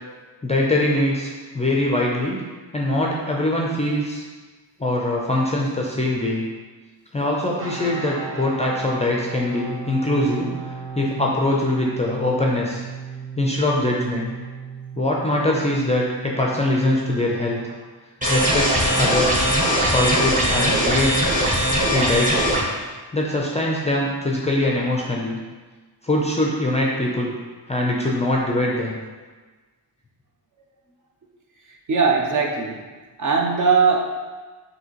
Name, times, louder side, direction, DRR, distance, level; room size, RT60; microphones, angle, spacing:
voice 1, 0.4-2.4 2.7-4.2 4.8-6.5 7.1-12.8 13.4-14.3 14.9-17.6 18.3-19.5 19.9-21.3 21.9-22.5 23.1-25.4 26.0-27.3 27.7-28.9, left 1 dB, 15° left, -2 dB, 0.4 m, -22 dB
sound 1, 7.6-17.8, right 5 dB, 65° right, 1.0 m, -36 dB
sound 2, 18.2-22.6, equal, 20° right, 0.8 m, -20 dB
voice 2, 31.9-32.8 33.2-34.0, right 5 dB, 45° right, 1 dB, 0.6 m, -19 dB
6.2 x 2.7 x 2.9 m, 1.3 s
wide cardioid pair, 165°, 42 cm